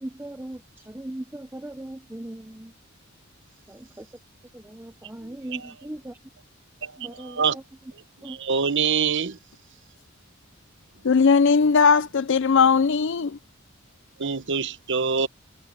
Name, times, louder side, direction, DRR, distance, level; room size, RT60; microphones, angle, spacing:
voice 1, 0.0-2.7 3.7-4.1 4.5-6.2 7.0-7.5 8.2-8.4, right 1 dB, 10° right, 0.7 m, -38 dB
voice 2, 6.8-7.6 8.2-9.4 14.2-15.3, right 6 dB, 60° right, 0.9 m, -25 dB
voice 3, 11.0-13.4, left 5 dB, 60° left, 0.5 m, -18 dB
head